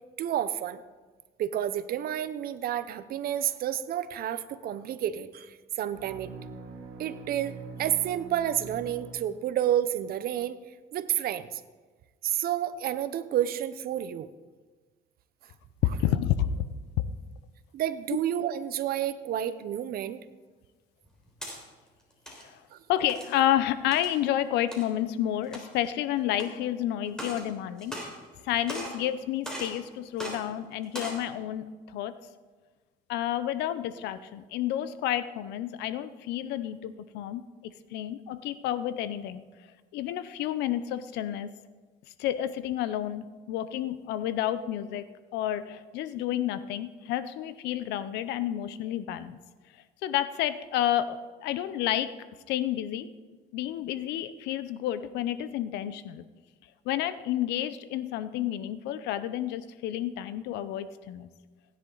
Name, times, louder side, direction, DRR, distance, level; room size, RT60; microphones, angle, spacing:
voice 1, 0.2-0.8 1.4-6.3 7.0-10.6 10.9-11.6 12.2-14.3 17.7-20.2 22.7-22.8, right 11 dB, 60° right, 14 dB, 0.8 m, -30 dB
sound 1, 5.9-9.8, right 4 dB, 85° right, 2.0 m, -44 dB
voice 2, 15.8-16.6 22.3-22.6 22.9-28.0 28.4-32.2 33.1-39.4 39.9-41.5 42.2-49.4 50.0-52.1 52.5-53.1 53.5-56.2 56.8-61.3, left 11 dB, 85° left, 13 dB, 0.7 m, -30 dB
sound 2, 21.0-21.6 22.1-22.4 23.1-23.4 23.9-24.2 24.7-24.8 25.4-25.9 26.4-26.5 27.1-27.5 27.8-28.4 28.7-29.0 29.4-29.8 30.2-30.4 30.8-31.2, right 1 dB, 5° left, 3.7 m, -38 dB
16.0 x 10.0 x 3.9 m, 1.4 s
cardioid pair, 110°, 17 cm